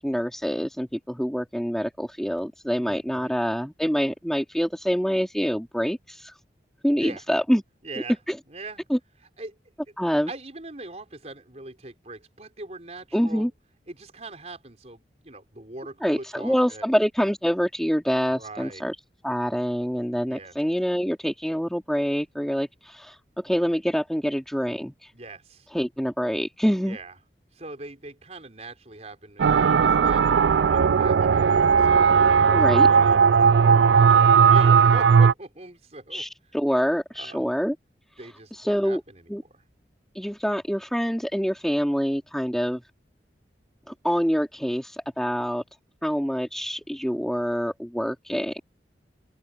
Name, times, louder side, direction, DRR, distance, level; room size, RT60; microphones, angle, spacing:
voice 1, 0.0-6.3 6.8-7.6 8.3-8.4 8.9-9.0 10.0-10.3 13.1-13.5 16.0-19.0 19.2-25.1 25.7-27.0 32.5-32.9 36.1-37.7 38.5-39.0 39.3-39.4 40.1-42.8 43.9-45.6 46.0-48.6, equal, ahead, 2.4 m, -26 dB
voice 2, 2.8-3.4 7.0-7.2 7.8-8.2 8.5-8.8 9.4-9.6 10.3-13.5 13.9-16.8 18.3-18.8 20.3-20.5 25.1-25.7 26.9-27.1 27.5-30.2 30.7-32.1 32.4-36.2 37.1-37.4 38.2-39.5, right 2 dB, 40° right, 4.9 m, -41 dB
sound 1, 29.4-35.3, right 6 dB, 80° right, 0.4 m, -17 dB
open air
head